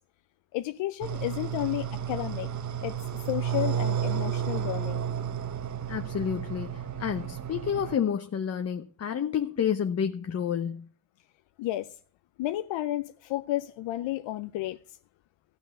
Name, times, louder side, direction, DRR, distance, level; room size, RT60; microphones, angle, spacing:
voice 1, 0.5-2.5 2.8-3.0 3.3-5.0 11.6-12.0 12.4-15.0, left 15 dB, 75° left, 0.7 m, -32 dB
sound 1, 1.0-8.0, right 8 dB, 40° right, 1.0 m, -32 dB
voice 2, 5.9-10.9, left 8 dB, 35° left, 0.8 m, -30 dB
15.0 x 5.7 x 8.7 m
cardioid pair, 120°, 45 cm